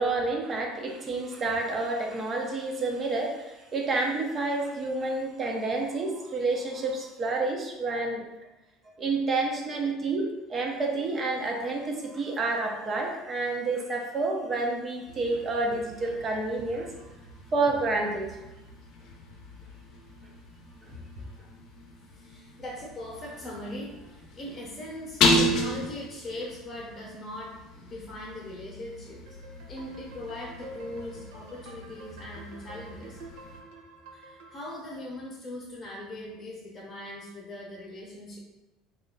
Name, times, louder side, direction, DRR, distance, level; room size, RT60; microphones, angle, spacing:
voice 1, 0.0-8.3 9.0-16.9 17.5-18.4 20.8-20.9, right 3 dB, 30° right, 1 dB, 0.7 m, -29 dB
sound 1, 15.1-33.6, left 2 dB, 60° left, 0.6 m, -34 dB
voice 2, 22.0-29.2 29.7-33.2 34.1-38.4, left 1 dB, 25° left, -5 dB, 0.9 m, -40 dB
sound 2, 29.3-34.7, right 2 dB, 80° right, 0.6 m, -48 dB
3.1 x 2.5 x 3.8 m, 1.0 s
supercardioid pair, 110°, 0 cm